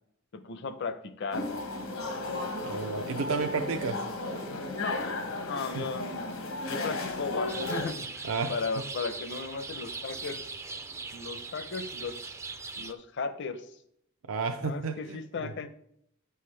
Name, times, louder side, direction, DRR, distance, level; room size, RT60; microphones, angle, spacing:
voice 1, 0.3-1.5 4.8-6.4 6.7-10.5 11.1-12.4 12.8-13.8 14.6-15.7, left 4 dB, 60° left, 11 dB, 0.6 m, -36 dB
sound 1, 1.3-7.9, left 2 dB, 85° left, 1.2 m, -34 dB
voice 2, 2.6-4.0 5.7-5.8 8.2-8.5 14.3-15.2 15.4-15.5, right 4 dB, 75° right, 5 dB, 0.5 m, -31 dB
sound 2, 7.5-12.9, right 4 dB, 15° right, 0.3 m, -40 dB
9.0 x 5.6 x 3.3 m, 0.72 s
head